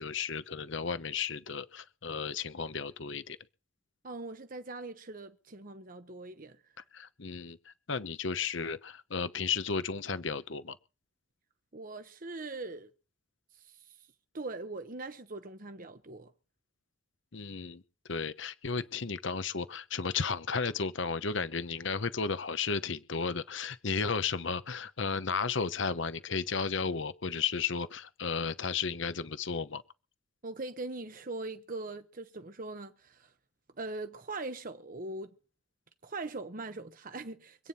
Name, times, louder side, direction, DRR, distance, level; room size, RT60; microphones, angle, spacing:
voice 1, 0.0-3.4 6.9-10.8 17.3-17.8 18.1-29.8, left 5 dB, 60° left, 1.0 m, -34 dB
voice 2, 4.0-6.6 11.7-12.9 13.5-14.1 14.3-16.3 30.4-33.3 33.8-35.4 36.0-37.7, right 2 dB, 40° right, 1.0 m, -41 dB
25.5 x 9.3 x 4.3 m
head